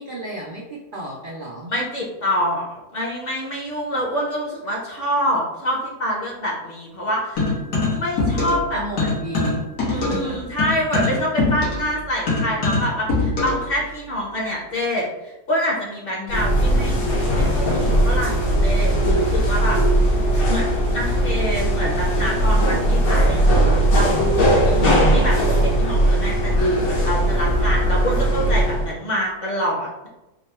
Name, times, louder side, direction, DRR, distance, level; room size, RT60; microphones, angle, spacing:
voice 1, 0.0-1.7 8.7-10.4 16.1-16.7 24.6-25.3, equal, 80° right, -3 dB, 0.4 m, -34 dB
voice 2, 1.7-7.5 7.9-9.1 9.9-16.9 17.3-19.8 20.1-20.2 20.5-30.1, equal, 45° left, -3 dB, 0.9 m, -26 dB
sound 1, 7.4-8.7 9.0-13.7, left 3 dB, 85° left, 1.7 m, -23 dB
sound 2, 16.3-28.9, right 1 dB, 70° left, 1.5 m, -19 dB
3.8 x 2.1 x 4.1 m, 0.98 s
omnidirectional pair, 1.6 m